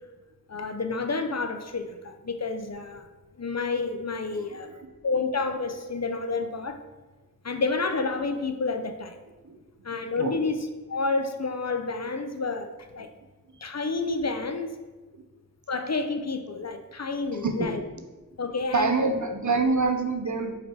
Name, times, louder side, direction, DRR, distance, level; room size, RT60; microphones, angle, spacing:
voice 1, 0.5-3.0 3.4-4.7 5.0-6.8 7.4-9.2 9.8-13.1 13.6-14.7 15.7-17.8 18.4-18.9, left 3 dB, 50° left, 6 dB, 0.6 m, -29 dB
voice 2, 4.5-4.9 9.4-9.6 10.2-10.4 13.0-13.1 15.1-15.2 17.3-18.0 18.7-20.6, right 3 dB, 60° right, 5 dB, 0.8 m, -27 dB
4.9 x 4.6 x 4.6 m, 1.2 s
wide cardioid pair, 40°, 34 cm